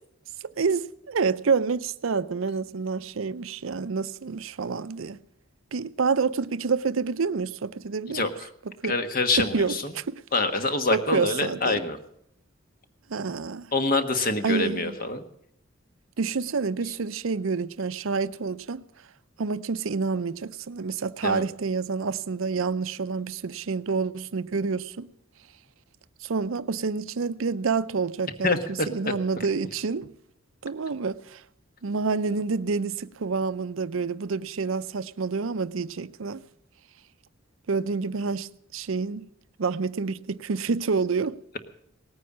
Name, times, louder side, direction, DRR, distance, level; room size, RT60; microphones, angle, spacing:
voice 1, 0.6-5.2 5.7-8.3 8.8-8.9 9.4-10.2 10.9-11.8 13.1-13.7 14.4-14.9 16.2-18.8 19.4-25.1 26.2-28.6 28.9-30.1 30.6-31.4 31.8-36.4 37.7-39.3 39.6-41.4, right 4 dB, 70° right, 0.6 m, -28 dB
voice 2, 8.1-8.5 8.8-9.9 10.3-12.0 13.7-15.2 21.2-21.4 28.4-29.1, left 3 dB, 45° left, 1.4 m, -26 dB
18.5 x 9.4 x 7.3 m
head